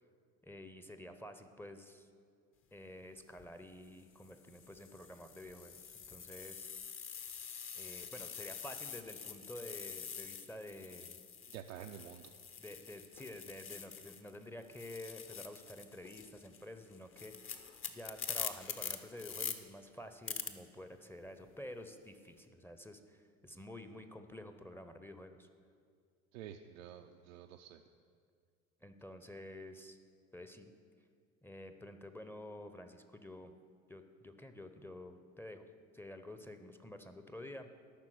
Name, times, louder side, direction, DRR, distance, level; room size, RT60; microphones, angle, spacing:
voice 1, 0.4-2.1 2.7-6.7 7.7-11.2 12.6-25.5 28.8-30.0 30.3-30.7 31.4-33.5 33.9-35.7 35.9-37.7, left 1 dB, 5° left, 8 dB, 0.7 m, -50 dB
sound 1, 3.2-3.4 4.2-14.4 14.6-19.6 20.3-20.5, left 7 dB, 30° left, 0.9 m, -45 dB
voice 2, 11.5-12.3 26.3-27.8, right 10 dB, 75° right, 4 dB, 0.6 m, -49 dB
12.0 x 5.9 x 7.7 m, 2.1 s
hypercardioid pair, 75°, 40 cm